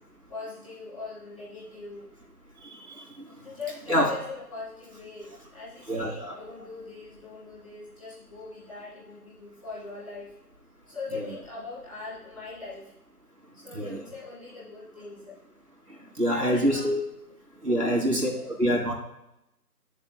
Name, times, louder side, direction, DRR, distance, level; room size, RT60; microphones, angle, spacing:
voice 1, 0.3-2.1 3.4-10.3 10.9-12.9 13.5-15.4 16.2-16.9 17.8-18.5, left 4 dB, 20° left, -7 dB, 1.8 m, -41 dB
voice 2, 5.9-6.4 11.1-11.3 13.7-14.1 16.2-17.0 17.6-18.9, equal, 80° right, -1 dB, 2.9 m, -25 dB
10.5 x 7.1 x 2.2 m, 0.86 s
figure-of-eight pair, 160°, 48 cm